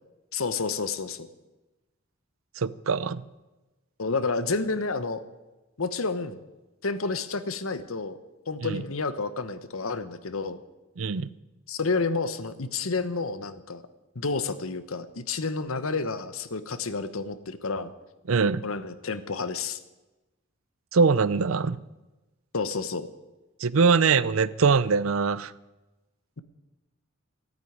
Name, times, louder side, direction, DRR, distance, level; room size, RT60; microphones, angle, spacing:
voice 1, 0.3-1.3 4.0-5.2 5.8-6.4 6.8-8.2 8.5-10.6 11.7-13.8 14.1-17.9 18.6-19.8 22.5-23.1, left 4 dB, 80° left, 12 dB, 1.1 m, -30 dB
voice 2, 2.6-3.2 8.6-8.8 11.0-11.3 18.3-18.6 20.9-21.8 23.6-25.5, right 5 dB, 75° right, 18 dB, 0.6 m, -22 dB
15.0 x 9.4 x 9.5 m, 1.1 s
head